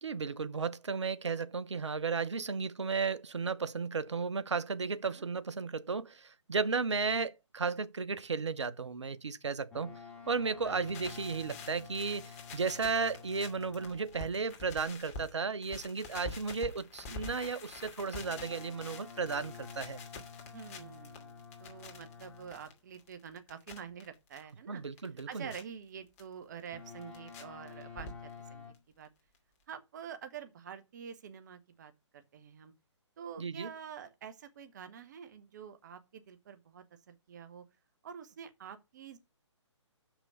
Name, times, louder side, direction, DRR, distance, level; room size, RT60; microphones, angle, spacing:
voice 1, 0.0-9.9 10.3-20.0 24.7-25.5 33.4-33.7, right 5 dB, 70° right, 0.8 m, -34 dB
Boat Water vehicle, 9.7-14.2 18.2-22.7 26.7-28.7, left 6 dB, 5° left, 2.5 m, -50 dB
sound 1, 10.6-15.3 15.6-24.4 24.8-25.6 26.2-26.3 26.7-27.4 27.7-28.5 28.7-28.8 29.0-29.1 29.3-29.4, left 3 dB, 30° left, 2.5 m, -47 dB
voice 2, 20.5-24.8 25.3-28.7 29.0-29.1 29.7-32.7 33.2-37.6 38.0-39.2, right 7 dB, 35° right, 1.0 m, -47 dB
6.9 x 6.0 x 6.6 m
figure-of-eight pair, 135°, 16 cm